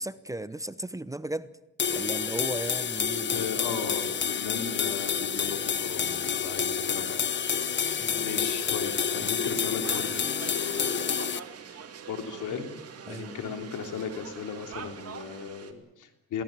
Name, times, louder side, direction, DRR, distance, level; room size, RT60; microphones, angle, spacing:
voice 1, 0.0-1.5 1.9-3.4 8.0-8.4 9.1-9.3 13.1-13.4, right 1 dB, 10° right, 14 dB, 0.9 m, -36 dB
sound 1, 1.8-11.4, left 7 dB, 40° left, 0.9 m, -29 dB
voice 2, 3.2-7.2 7.8-11.2 12.1-12.7 13.1-16.4, left 6 dB, 80° left, 5 dB, 3.4 m, -37 dB
sound 2, 9.8-15.7, right 7 dB, 50° right, 2.8 m, -43 dB
22.5 x 18.0 x 9.1 m, 0.94 s
cardioid pair, 90°, 30 cm